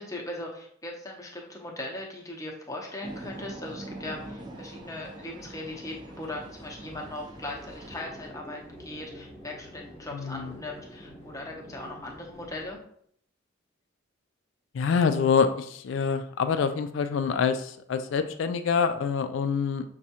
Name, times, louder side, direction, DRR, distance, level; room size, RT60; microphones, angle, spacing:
voice 1, 0.0-12.8, left 1 dB, 15° left, -1 dB, 0.7 m, -39 dB
sound 1, 3.0-8.0, right 1 dB, 20° right, 0.5 m, -43 dB
sound 2, 6.2-12.8, equal, 35° left, 1.0 m, -47 dB
voice 2, 10.1-10.5 14.7-19.8, left 6 dB, 65° left, 9 dB, 0.3 m, -26 dB
6.0 x 2.3 x 2.8 m, 0.64 s
head